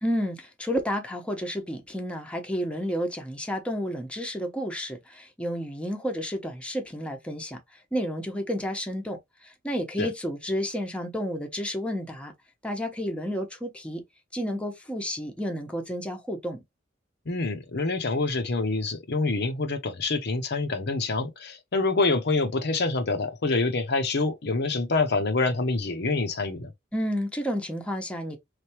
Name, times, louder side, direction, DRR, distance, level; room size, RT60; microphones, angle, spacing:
voice 1, 0.0-7.6 7.9-12.3 12.6-14.0 14.3-16.6 26.9-28.4, equal, 5° left, 0.9 m, -31 dB
voice 2, 17.3-26.7, left 3 dB, 60° left, 0.9 m, -26 dB
4.1 x 3.4 x 2.9 m
head